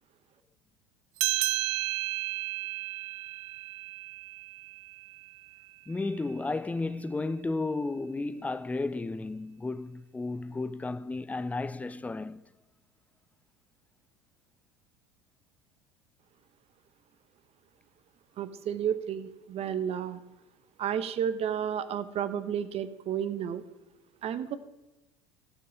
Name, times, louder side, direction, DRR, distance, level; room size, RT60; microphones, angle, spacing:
sound 1, 1.2-6.1, right 19 dB, 60° right, 0.4 m, -33 dB
voice 1, 5.9-12.4, left 3 dB, 10° left, 0.5 m, -33 dB
voice 2, 18.4-20.2 20.8-23.6 24.2-24.6, right 9 dB, 40° right, 0.8 m, -32 dB
16.0 x 5.4 x 5.0 m
figure-of-eight pair, 75°, 16 cm